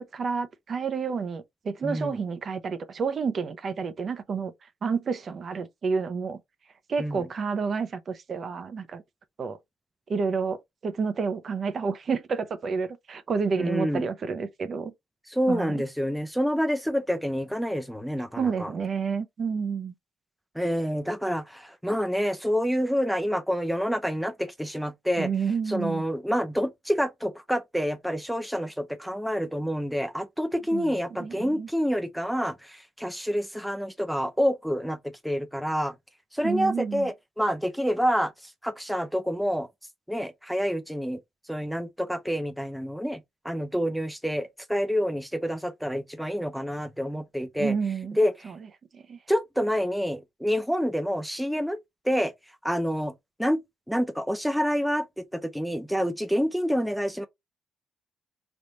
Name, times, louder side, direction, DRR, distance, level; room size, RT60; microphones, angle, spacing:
voice 1, 0.1-4.5 4.8-6.4 6.9-9.0 9.4-9.6 10.1-14.9 15.5-15.8 18.4-19.9 25.2-26.0 30.7-31.7 36.4-37.1 47.6-48.6 48.9-49.2, right 5 dB, 50° right, 0.6 m, -30 dB
voice 2, 1.8-2.2 7.0-7.2 13.6-14.0 15.3-18.7 20.5-25.3 25.7-35.0 35.2-35.9 36.3-38.3 38.6-39.7 40.1-41.2 41.5-43.2 43.4-47.7 48.2-48.5 49.3-51.8 52.0-52.3 52.6-53.1 53.4-53.6 53.9-57.3, equal, ahead, 0.6 m, -27 dB
3.5 x 2.5 x 4.2 m
cardioid pair, 90°, 0 cm